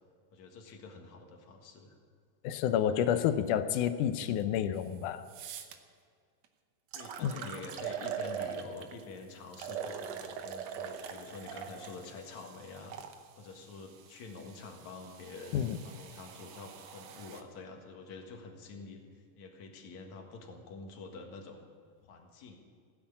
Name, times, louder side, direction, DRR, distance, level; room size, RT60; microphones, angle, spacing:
voice 1, 0.3-2.0 6.9-21.7 22.0-22.6, left 3 dB, 60° left, 3 dB, 2.9 m, -47 dB
voice 2, 2.4-5.3 7.2-7.3 15.5-15.8, left 9 dB, 75° left, 11 dB, 2.0 m, -29 dB
sound 1, 4.8-4.9 5.3-5.8 6.4-6.5 6.9-9.0 9.5-13.2 14.0-17.4, right 8 dB, 65° right, 1.7 m, -42 dB
16.0 x 10.0 x 8.6 m, 2.1 s
omnidirectional pair, 4.0 m